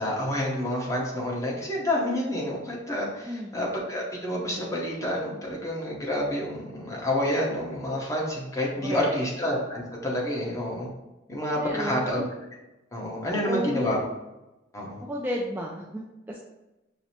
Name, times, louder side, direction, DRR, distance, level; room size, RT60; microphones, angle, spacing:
voice 1, 0.0-10.9 11.3-12.2 12.9-14.0 14.7-15.0, left 1 dB, 15° left, -3 dB, 0.9 m, -28 dB
voice 2, 3.2-3.5 8.8-9.3 11.6-12.2 13.3-13.9 15.0-16.4, equal, 10° right, -3 dB, 0.3 m, -33 dB
5.8 x 2.0 x 2.8 m, 1.0 s
head